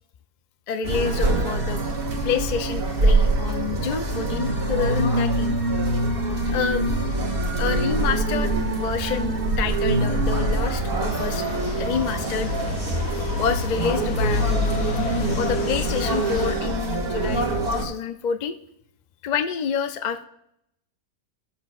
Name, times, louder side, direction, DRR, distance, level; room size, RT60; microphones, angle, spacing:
voice 1, 0.7-1.8 2.2-5.6 6.5-6.9 7.6-11.4 11.8-12.5 13.4-14.5 15.3-18.5 19.2-20.3, left 7 dB, 60° left, 8 dB, 0.4 m, -28 dB
sound 1, 0.8-17.9, right 2 dB, 45° right, 1.6 m, -24 dB
sound 2, 11.1-16.6, left 7 dB, 90° left, 1.1 m, -32 dB
14.5 x 7.4 x 2.4 m, 0.74 s
omnidirectional pair, 1.5 m